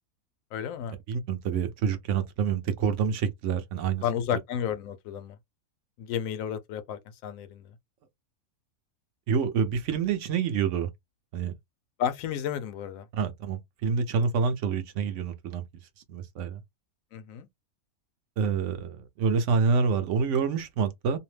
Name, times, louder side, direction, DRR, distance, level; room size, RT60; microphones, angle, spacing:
voice 1, 0.5-1.0 4.0-5.4 6.0-7.8 12.0-13.1 17.1-17.5, left 9 dB, 70° left, 0.9 m, -32 dB
voice 2, 1.1-4.0 9.3-10.9 11.3-11.5 13.1-15.6 16.1-16.6 18.4-21.2, right 6 dB, 65° right, 0.9 m, -27 dB
2.7 x 2.0 x 3.1 m
omnidirectional pair, 1.5 m